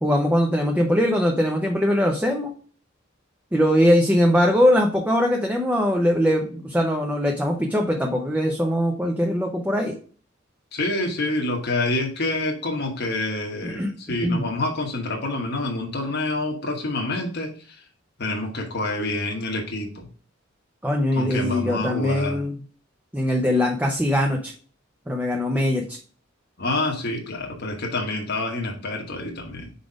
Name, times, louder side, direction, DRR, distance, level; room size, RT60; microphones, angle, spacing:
voice 1, 0.0-2.5 3.5-9.9 13.6-13.9 14.2-14.5 20.8-22.5 23.1-24.5 25.1-26.0, equal, 10° right, 1 dB, 0.7 m, -21 dB
voice 2, 10.7-17.8 18.2-20.1 21.1-22.4 26.6-29.7, left 2 dB, 55° left, 1 dB, 1.2 m, -27 dB
5.0 x 4.2 x 4.9 m, 0.40 s
head